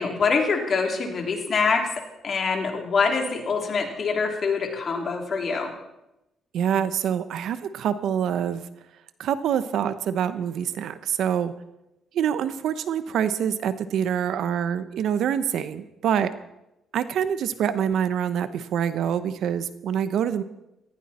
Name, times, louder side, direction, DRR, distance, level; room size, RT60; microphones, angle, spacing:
voice 1, 0.0-1.8 2.2-5.7, left 5 dB, 50° left, 2 dB, 3.4 m, -24 dB
voice 2, 6.5-8.7 9.2-11.5 12.1-16.3 16.9-20.4, right 8 dB, 75° right, 13 dB, 0.9 m, -25 dB
18.5 x 15.5 x 4.4 m, 0.93 s
cardioid pair, 90°, 0 cm